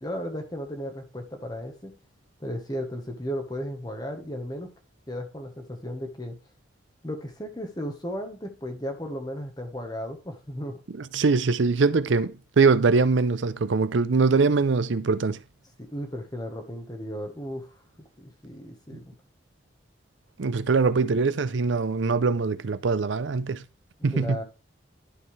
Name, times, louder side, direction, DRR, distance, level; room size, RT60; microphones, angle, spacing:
voice 1, 0.0-2.0 2.4-4.7 5.1-6.4 7.0-10.8 15.8-17.7 18.2-19.1 24.1-24.4, equal, 20° left, 1.2 m, -35 dB
voice 2, 11.0-15.4 20.4-23.6 24.0-24.4, right 4 dB, 80° right, 0.6 m, -22 dB
11.5 x 5.4 x 3.3 m
head